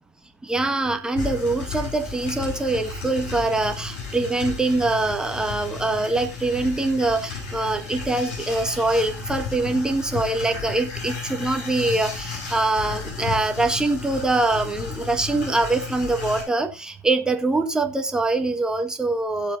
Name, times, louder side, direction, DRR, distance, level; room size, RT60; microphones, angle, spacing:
voice 1, 0.4-19.6, right 2 dB, 10° right, 6 dB, 1.7 m, -24 dB
sound 1, 1.2-16.4, left 5 dB, 55° left, 6.4 m, -34 dB
16.5 x 7.7 x 2.7 m, 0.25 s
hypercardioid pair, 85°, 8 cm